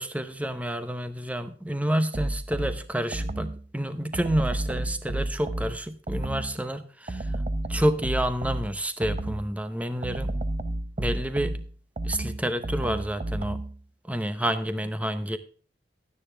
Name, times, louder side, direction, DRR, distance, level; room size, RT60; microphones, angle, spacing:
voice 1, 0.0-7.4 7.7-10.3 11.0-11.6 12.0-13.6 14.0-15.4, equal, 10° right, 10 dB, 0.8 m, -29 dB
sound 1, 2.1-3.7 4.1-6.6 7.1-9.6 10.0-13.8, right 1 dB, 40° right, 0.7 m, -31 dB
12.0 x 10.0 x 3.5 m, 0.40 s
head